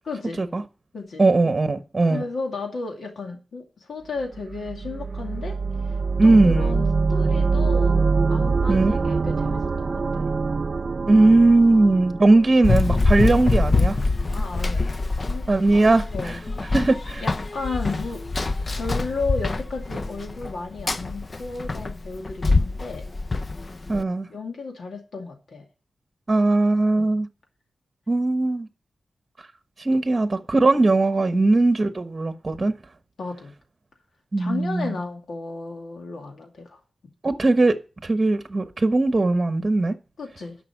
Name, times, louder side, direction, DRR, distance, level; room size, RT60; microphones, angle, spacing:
voice 1, 0.1-0.4 0.9-1.2 2.1-5.6 6.2-8.0 8.3-10.0 14.3-14.9 15.2-15.8 16.1-16.4 17.2-18.2 18.7-23.0 23.9-24.0 24.3-25.6 27.0-27.2 31.3-31.4 33.2-33.5 34.4-36.8 40.2-40.6, left 3 dB, 80° left, 2.5 m, -33 dB
voice 2, 1.2-2.2 6.2-6.9 8.7-9.0 11.1-14.0 15.5-16.4 16.7-17.2 23.9-24.3 26.3-27.3 28.1-28.7 29.8-32.8 34.3-35.0 37.2-37.8 38.0-39.9, right 2 dB, 35° right, 1.1 m, -19 dB
sound 1, 4.3-13.2, right 4 dB, 55° right, 0.5 m, -24 dB
Run, 12.6-24.0, left 3 dB, 40° left, 0.6 m, -25 dB
11.5 x 6.0 x 7.3 m
wide cardioid pair, 90°, 0 cm